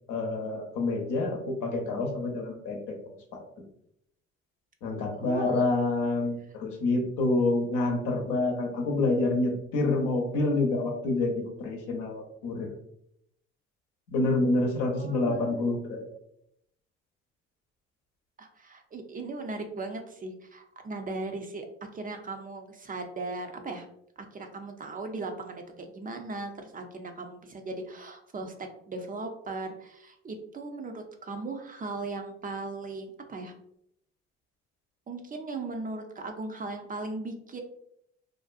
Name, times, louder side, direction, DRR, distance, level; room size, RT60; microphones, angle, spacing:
voice 1, 0.1-2.9 3.3-3.4 4.8-12.7 14.1-16.0, left 2 dB, 75° left, 1 dB, 0.7 m, -27 dB
voice 2, 5.3-5.7 15.0-15.6 18.4-21.7 21.9-23.9 24.3-33.5 35.1-37.6, right 3 dB, 25° right, 5 dB, 0.4 m, -38 dB
2.5 x 2.2 x 2.4 m, 0.73 s
hypercardioid pair, 55°, 32 cm